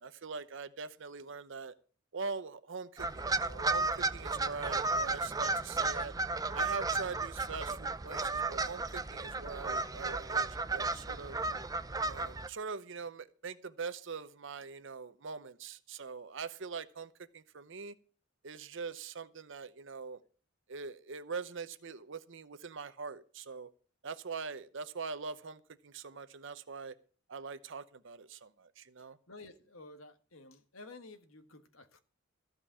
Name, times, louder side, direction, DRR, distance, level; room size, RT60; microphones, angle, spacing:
voice 1, 0.0-1.7 2.1-6.1 6.5-11.4 12.0-17.9 18.4-20.2 20.7-23.7 24.0-26.9 27.3-29.2, right 5 dB, 65° right, 0.8 m, -43 dB
sound 1, 3.0-12.5, right 3 dB, 20° right, 0.5 m, -34 dB
voice 2, 29.3-32.0, left 2 dB, 90° left, 1.6 m, -52 dB
15.0 x 5.3 x 8.5 m
head